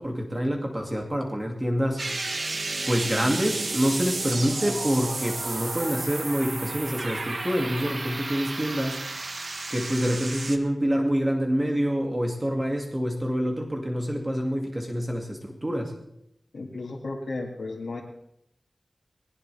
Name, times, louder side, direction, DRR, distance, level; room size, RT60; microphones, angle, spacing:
voice 1, 0.0-2.4 2.9-9.0 9.7-15.9, equal, 20° right, 1 dB, 2.4 m, -27 dB
sound 1, 2.0-10.6, right 3 dB, 55° right, 1.3 m, -32 dB
voice 2, 16.5-18.0, left 2 dB, 75° left, -4 dB, 2.2 m, -34 dB
20.5 x 18.0 x 3.5 m, 0.80 s
wide cardioid pair, 85°, 0 cm